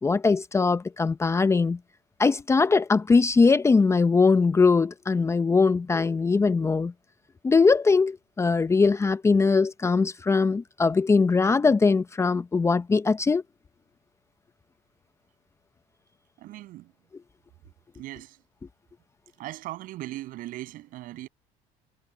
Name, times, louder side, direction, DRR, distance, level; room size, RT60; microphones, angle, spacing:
voice 1, 0.0-1.8 2.2-6.9 7.4-13.4, left 4 dB, 20° left, 0.6 m, -21 dB
voice 2, 16.4-16.9 18.0-18.4 19.4-21.3, right 16 dB, 70° right, 7.9 m, -38 dB
cardioid pair, 115°, 15 cm